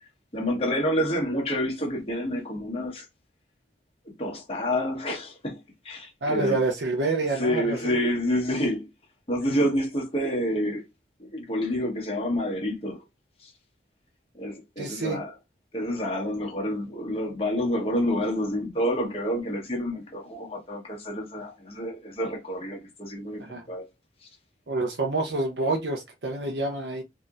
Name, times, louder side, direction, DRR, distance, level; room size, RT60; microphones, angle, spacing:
voice 1, 0.0-3.0 4.0-5.6 5.8-6.6 7.4-8.9 9.3-10.8 11.2-13.0 13.4-13.5 14.3-15.3 15.7-23.8 24.2-24.3, equal, 35° left, 1.2 m, -28 dB
voice 2, 6.2-7.9 14.8-15.2 23.4-23.6 24.7-27.0, right 2 dB, 80° right, 0.7 m, -27 dB
4.1 x 2.9 x 2.5 m
head